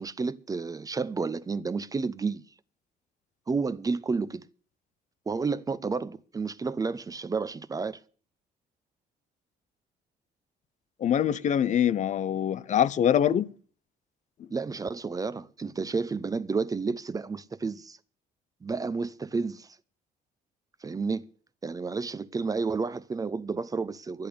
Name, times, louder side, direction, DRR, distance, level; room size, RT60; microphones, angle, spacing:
voice 1, 0.0-2.4 3.5-4.4 5.3-8.0 14.5-18.0 18.6-19.7 20.8-21.3 21.6-24.3, right 4 dB, 20° right, 0.6 m, -31 dB
voice 2, 11.0-13.5 14.4-14.5, left 9 dB, 45° left, 0.6 m, -24 dB
12.0 x 10.5 x 6.8 m
cardioid pair, 110°, 17 cm